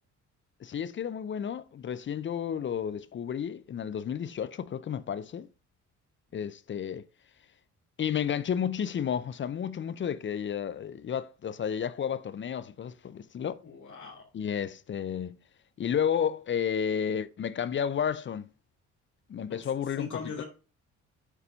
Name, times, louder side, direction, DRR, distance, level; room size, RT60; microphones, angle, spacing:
voice 1, 0.6-5.5 6.3-7.0 8.0-13.6 14.3-15.4 15.8-18.5 19.3-20.1 20.4-20.5, left 8 dB, 40° left, 0.5 m, -32 dB
voice 2, 13.6-14.3 19.5-20.4, left 5 dB, 75° left, 2.6 m, -41 dB
6.9 x 4.2 x 5.5 m
cardioid pair, 90°, 30 cm